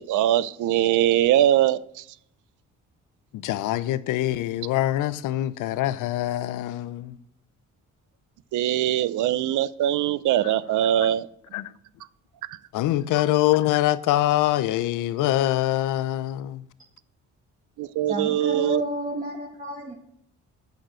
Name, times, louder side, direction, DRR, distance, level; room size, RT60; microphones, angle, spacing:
voice 1, 0.0-2.0 8.5-11.3 17.8-18.8, right 12 dB, 80° right, 0.6 m, -22 dB
voice 2, 3.3-7.2 11.5-11.7 12.7-16.6, left 14 dB, 90° left, 0.6 m, -24 dB
voice 3, 18.1-20.0, right 1 dB, 25° right, 2.0 m, -30 dB
9.1 x 6.5 x 7.5 m
cardioid pair, 90°, 30 cm